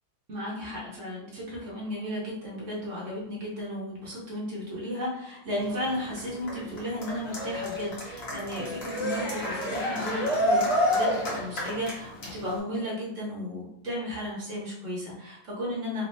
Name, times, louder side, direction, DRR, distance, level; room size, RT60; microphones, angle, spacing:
voice 1, 0.3-16.0, equal, 55° right, -4 dB, 1.0 m, -34 dB
Cheering, 5.6-12.6, equal, 45° left, 0.9 m, -29 dB
3.2 x 3.1 x 2.7 m, 0.79 s
omnidirectional pair, 2.1 m